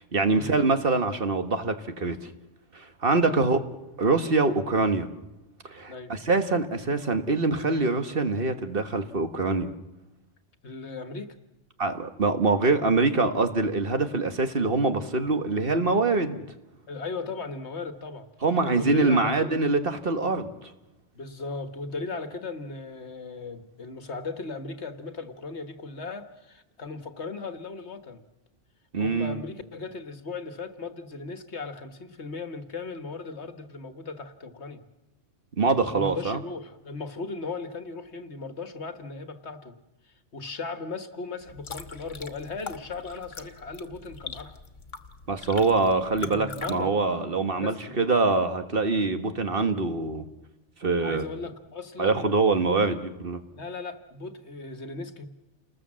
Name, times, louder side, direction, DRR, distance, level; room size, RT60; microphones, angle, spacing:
voice 1, 0.0-2.3 2.7-3.6 4.0-5.1 5.7-9.7 11.8-16.4 18.4-20.7 28.9-29.4 35.6-36.4 45.3-50.3 50.8-51.2 52.0-53.4, right 3 dB, 50° right, 1.6 m, -24 dB
voice 2, 10.6-11.3 16.9-18.3 18.8-19.6 21.1-28.2 29.0-34.8 35.9-39.7 40.0-44.6 46.1-47.0 47.5-48.0 51.0-52.3 52.7-53.0 53.5-55.3, left 3 dB, 60° left, 1.7 m, -37 dB
sound 1, 41.4-46.7, left 5 dB, 75° left, 1.8 m, -42 dB
29.5 x 20.0 x 7.5 m
omnidirectional pair, 1.3 m